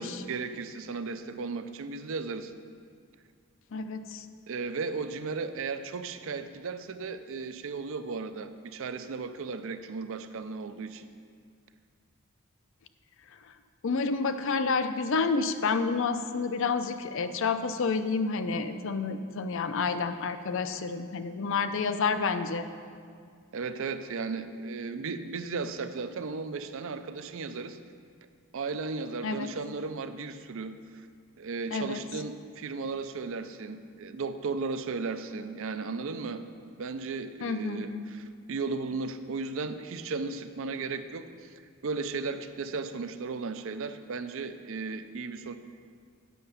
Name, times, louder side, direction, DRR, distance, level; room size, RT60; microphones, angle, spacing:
voice 1, 0.0-2.5 4.5-11.1 23.5-27.8 28.5-31.1 31.4-36.4 36.8-41.5 41.8-45.5, right 4 dB, 60° right, 10 dB, 0.5 m, -35 dB
voice 2, 3.7-4.3 13.3-13.5 13.8-22.7 29.2-29.5 31.7-32.0 37.4-38.1, left 4 dB, 60° left, 10 dB, 0.5 m, -29 dB
9.3 x 6.6 x 5.6 m, 2.1 s
head